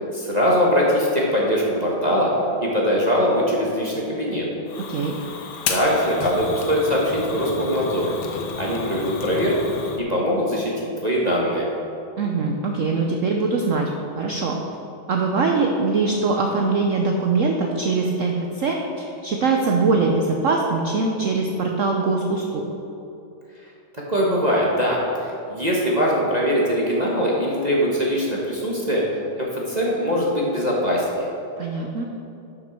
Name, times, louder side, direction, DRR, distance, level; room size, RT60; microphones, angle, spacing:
voice 1, 0.1-2.3 2.6-4.5 5.7-8.1 8.6-9.6 10.0-11.7 24.1-29.0 29.4-31.3, equal, 25° right, -4 dB, 1.1 m, -22 dB
Fire, 4.7-10.0, left 5 dB, 80° left, 1.6 m, -32 dB
voice 2, 12.2-13.9 14.2-14.5 15.1-22.6 31.6-32.1, right 4 dB, 75° right, 1 dB, 0.7 m, -22 dB
11.5 x 6.4 x 4.5 m, 2.8 s
omnidirectional pair, 2.2 m